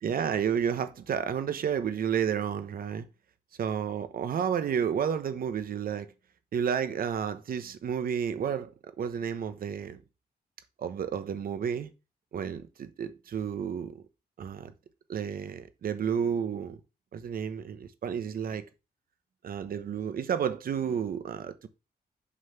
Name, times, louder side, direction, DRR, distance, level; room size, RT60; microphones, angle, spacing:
voice 1, 0.0-3.1 3.6-6.1 6.5-8.7 9.0-10.0 10.8-11.9 12.3-14.0 14.4-14.7 15.1-16.8 17.1-18.6 19.4-21.7, right 8 dB, 60° right, 1.0 m, -31 dB
6.3 x 5.7 x 5.7 m
wide cardioid pair, 170°, 16 cm